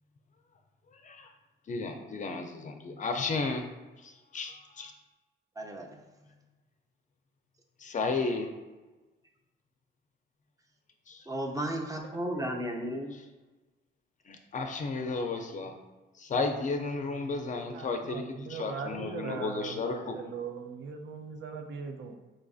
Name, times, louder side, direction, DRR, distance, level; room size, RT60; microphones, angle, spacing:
voice 1, 0.9-1.3 1.7-3.7 4.0-4.9 7.8-8.5 11.1-11.3 14.3-15.7 16.1-20.2, left 3 dB, 40° left, 5 dB, 0.5 m, -33 dB
voice 2, 5.6-6.0 11.3-13.1, right 1 dB, 15° right, 2 dB, 0.6 m, -34 dB
voice 3, 17.7-22.2, right 5 dB, 70° right, 5 dB, 0.5 m, -40 dB
5.0 x 2.5 x 2.4 m, 1.2 s
cardioid pair, 90°, 20 cm